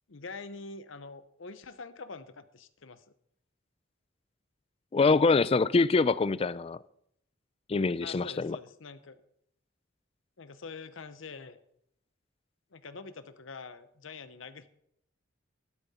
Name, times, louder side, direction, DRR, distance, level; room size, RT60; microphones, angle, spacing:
voice 1, 0.1-3.0 8.0-9.2 10.4-11.6 12.7-14.7, left 4 dB, 80° left, 0.8 m, -45 dB
voice 2, 4.9-6.8 7.7-8.6, left 4 dB, 30° left, 0.4 m, -24 dB
13.5 x 12.0 x 4.2 m
head